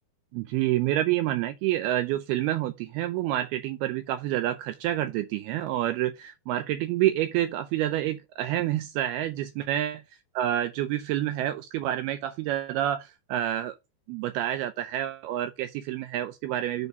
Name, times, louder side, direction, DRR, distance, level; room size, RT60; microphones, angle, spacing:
voice 1, 0.3-10.0 10.4-13.8 14.1-16.9, right 13 dB, 85° right, 2.2 m, -28 dB
7.2 x 4.0 x 5.9 m
omnidirectional pair, 5.1 m